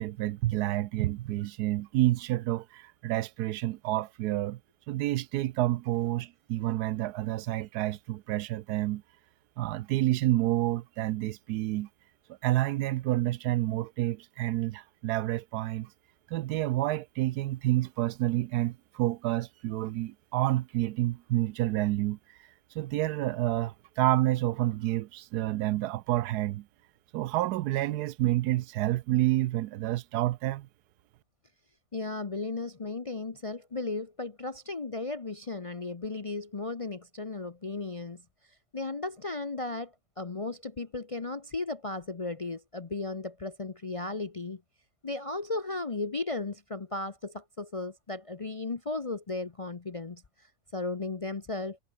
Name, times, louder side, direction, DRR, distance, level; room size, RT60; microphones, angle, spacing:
voice 1, 0.0-4.6 4.9-9.0 9.6-11.9 12.4-15.9 16.3-22.2 22.8-26.6 27.1-30.7, right 15 dB, 85° right, 1.1 m, -29 dB
voice 2, 31.9-38.2 38.7-44.6 45.0-50.2 50.7-51.8, left 3 dB, 35° left, 0.6 m, -35 dB
omnidirectional pair, 1.7 m